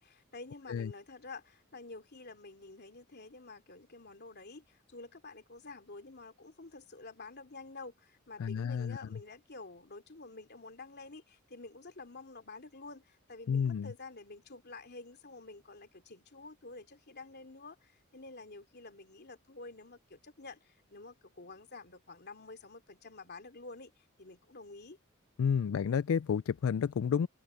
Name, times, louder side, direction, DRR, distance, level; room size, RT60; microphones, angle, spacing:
voice 1, 0.0-25.0, left 3 dB, 50° left, 3.1 m, -49 dB
voice 2, 8.4-9.2 13.5-13.9 25.4-27.3, left 7 dB, 75° left, 0.4 m, -31 dB
head